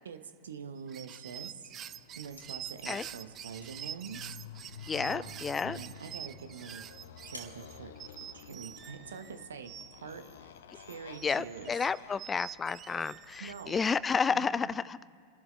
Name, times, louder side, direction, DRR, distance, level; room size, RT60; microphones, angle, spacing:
voice 1, 0.0-1.7 2.2-4.4 5.0-6.8 7.2-7.9 8.3-12.2 13.4-13.8 14.3-14.5, right 6 dB, 65° right, 9 dB, 1.1 m, -45 dB
sound 1, 0.8-10.3 10.8-14.0, right 10 dB, 30° right, 0.6 m, -46 dB
Motorcycle, 1.6-14.4, left 8 dB, 60° left, 0.7 m, -52 dB
sound 2, 2.0-8.8, equal, 85° left, 2.2 m, -57 dB
voice 2, 4.9-5.8 11.2-15.0, left 5 dB, 15° left, 20 dB, 0.3 m, -31 dB
29.0 x 12.0 x 3.3 m, 2.4 s
figure-of-eight pair, 90°, 0 cm